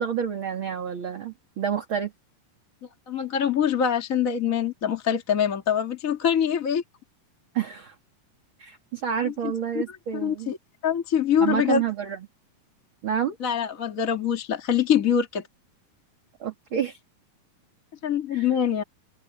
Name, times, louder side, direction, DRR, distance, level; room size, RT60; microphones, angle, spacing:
voice 1, 0.0-2.1 7.5-7.9 8.6-10.5 11.4-12.2 13.0-13.4 16.4-17.0 18.3-18.5, right 8 dB, 40° right, 2.7 m, -29 dB
voice 2, 2.8-6.8 9.2-9.8 10.1-10.6 10.8-11.8 13.4-15.4 18.0-18.8, left 8 dB, 30° left, 1.7 m, -24 dB
omnidirectional pair, 4.0 m